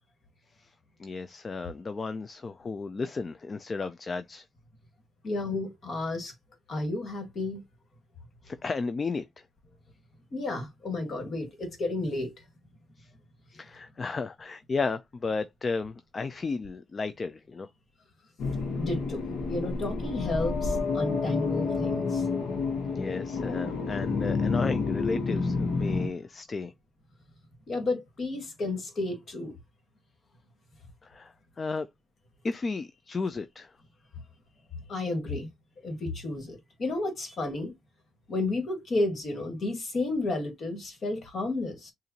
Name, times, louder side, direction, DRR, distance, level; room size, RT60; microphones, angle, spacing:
voice 1, 1.0-4.5 8.4-9.2 13.0-13.1 13.5-17.7 22.9-26.7 31.0-31.9 32.4-33.7, left 4 dB, 35° left, 0.3 m, -33 dB
voice 2, 5.2-6.3 6.7-7.6 10.3-12.3 18.7-22.3 27.7-29.5 34.9-35.5 35.8-37.7 38.3-41.9, left 2 dB, 50° left, 1.7 m, -32 dB
sound 1, 18.4-26.1, left 4 dB, 80° left, 1.0 m, -29 dB
6.7 x 2.5 x 2.8 m
cardioid pair, 100°, 0 cm